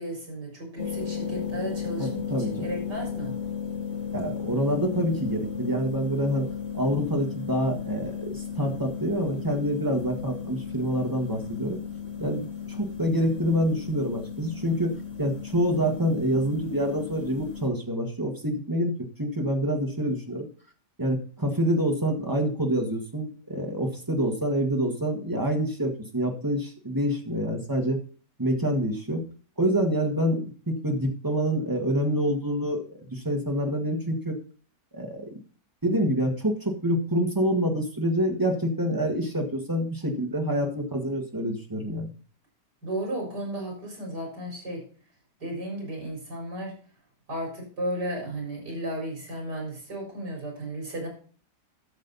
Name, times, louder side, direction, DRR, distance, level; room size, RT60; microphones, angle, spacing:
voice 1, 0.0-3.3 42.8-44.8 45.4-46.7 47.3-51.1, right 1 dB, 80° right, 0 dB, 5.2 m, -34 dB
sound 1, 0.8-17.7, left 7 dB, 40° left, 2.1 m, -35 dB
voice 2, 2.0-2.7 4.1-11.8 12.2-20.5 21.0-28.0 28.4-29.2 29.6-34.4 34.9-35.3 35.8-42.1, equal, 15° right, 2 dB, 1.6 m, -27 dB
13.0 x 6.5 x 4.1 m, 0.42 s
omnidirectional pair, 1.8 m